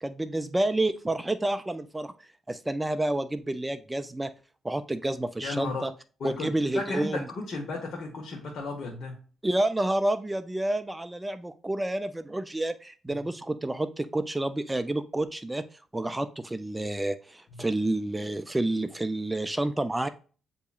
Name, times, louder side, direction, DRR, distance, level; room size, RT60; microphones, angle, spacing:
voice 1, 0.0-2.1 2.5-4.3 4.6-5.9 6.2-7.3 9.4-15.6 15.9-20.1, right 1 dB, 10° right, 12 dB, 0.3 m, -29 dB
voice 2, 5.4-5.8 6.2-9.2, left 3 dB, 60° left, -1 dB, 1.0 m, -34 dB
8.0 x 2.8 x 2.4 m, 0.38 s
cardioid pair, 90°, 0 cm